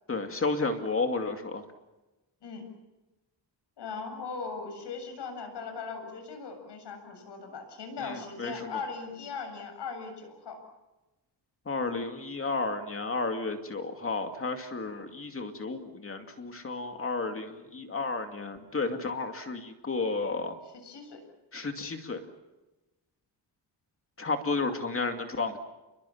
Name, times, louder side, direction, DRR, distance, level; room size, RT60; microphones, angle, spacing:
voice 1, 0.1-1.6 8.0-8.7 11.7-20.6 21.5-22.2 24.2-25.6, left 3 dB, 30° left, 5 dB, 2.5 m, -32 dB
voice 2, 3.8-10.6 20.8-21.2, left 5 dB, 80° left, 5 dB, 7.8 m, -39 dB
29.0 x 23.0 x 7.3 m, 1.0 s
wide cardioid pair, 130°, 41 cm